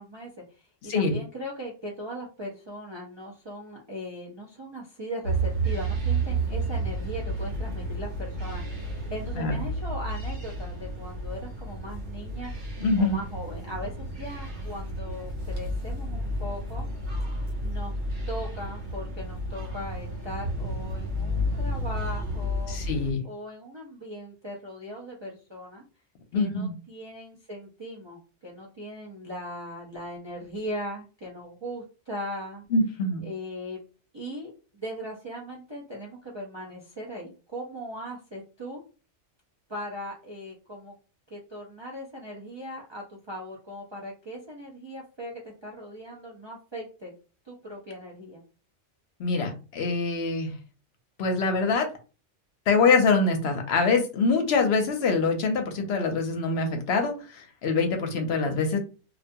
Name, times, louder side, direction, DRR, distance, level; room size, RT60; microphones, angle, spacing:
voice 1, 0.0-16.8 17.6-18.0 18.3-22.8 23.2-25.8 26.3-32.6 33.2-33.8 34.1-38.8 39.7-40.9 41.3-47.1 47.4-48.4, equal, 45° right, -3 dB, 0.3 m, -39 dB
sound 1, 5.2-23.1, right 1 dB, 75° right, 1.0 m, -31 dB
voice 2, 12.8-13.2 22.7-23.2 26.3-26.7 32.7-33.2 49.2-50.5 51.2-51.9 52.7-58.8, left 4 dB, 65° left, 4 dB, 0.8 m, -24 dB
2.3 x 2.2 x 2.6 m, 0.35 s
omnidirectional pair, 1.2 m